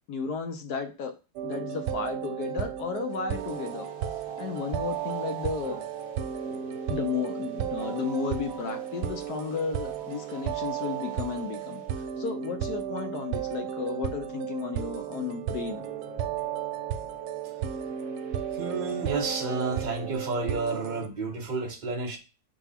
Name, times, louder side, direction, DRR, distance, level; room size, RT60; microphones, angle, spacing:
voice 1, 0.1-1.1 1.4-3.9 4.4-5.8 6.9-15.8, left 5 dB, 65° left, 6 dB, 1.0 m, -33 dB
sound 1, 1.4-21.1, right 10 dB, 85° right, 1.5 m, -34 dB
sound 2, 3.3-12.5 15.7-20.2, right 5 dB, 50° right, 1.4 m, -43 dB
voice 2, 18.5-22.2, right 3 dB, 30° right, 1 dB, 1.0 m, -31 dB
4.6 x 3.9 x 5.7 m, 0.32 s
omnidirectional pair, 2.3 m